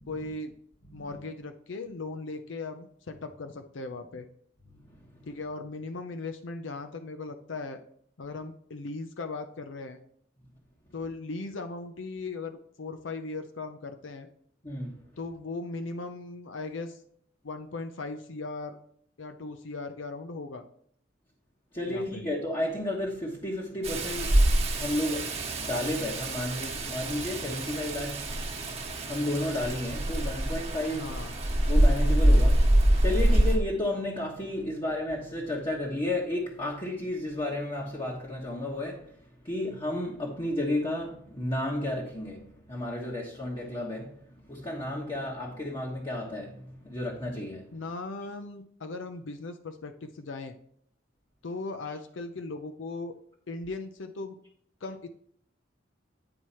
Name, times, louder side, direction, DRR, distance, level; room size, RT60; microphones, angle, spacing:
voice 1, 0.1-0.5 0.9-4.3 5.3-7.8 8.2-10.0 10.9-14.3 15.2-17.0 17.4-18.8 19.2-20.6 21.9-22.2 30.9-31.3 47.7-50.5 51.4-53.1 53.5-54.4 54.8-55.1, left 3 dB, 80° left, 0.6 m, -38 dB
voice 2, 0.8-1.2 4.6-5.3 14.6-14.9 21.7-24.4 24.8-28.2 29.1-31.2 31.7-32.7 33.0-39.1 39.4-47.7, left 1 dB, 25° left, 1.3 m, -32 dB
Rain, 23.8-33.6, right 1 dB, 35° right, 1.3 m, -25 dB
9.7 x 4.7 x 4.3 m
head